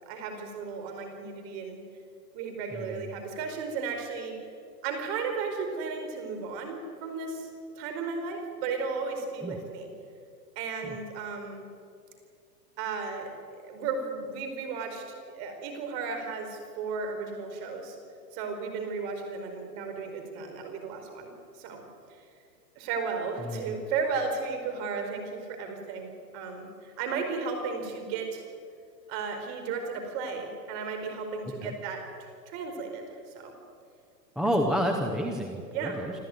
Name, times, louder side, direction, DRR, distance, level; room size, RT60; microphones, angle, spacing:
voice 1, 0.0-1.8 2.3-4.3 4.8-7.5 7.7-9.9 10.5-11.6 12.8-13.3 13.6-18.0 18.3-22.2 22.7-28.4 29.1-33.5 35.7-36.0, right 5 dB, 35° right, 5 dB, 4.8 m, -34 dB
voice 2, 2.7-3.0 9.4-9.6 10.8-11.0 23.4-23.7 31.6-31.7 34.4-36.1, equal, ahead, 2 dB, 0.6 m, -29 dB
27.0 x 13.5 x 9.4 m, 2.3 s
hypercardioid pair, 145°, 50 cm